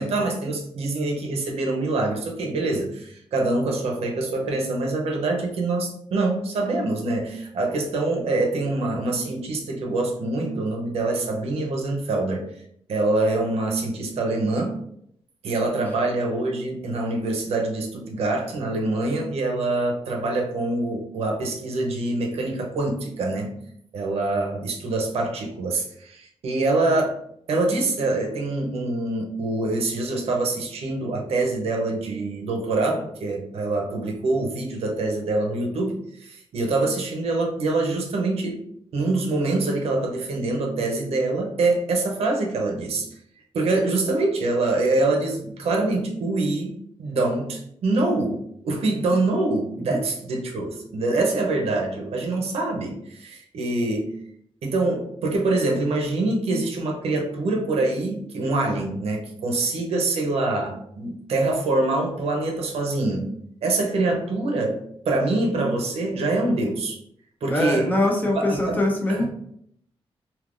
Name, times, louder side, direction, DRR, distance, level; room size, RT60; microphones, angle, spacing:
voice 1, 0.0-12.4 12.9-14.8 15.4-23.5 23.9-27.2 27.5-38.6 38.9-43.1 43.5-54.1 54.6-63.3 63.6-64.8 65.1-67.0 67.4-67.9 68.4-68.8 69.1-69.3, right 2 dB, 90° right, 1 dB, 0.7 m, -25 dB
voice 2, 67.5-69.3, left 1 dB, 15° left, -1 dB, 0.8 m, -23 dB
3.5 x 2.8 x 2.5 m, 0.69 s
wide cardioid pair, 115°, 10 cm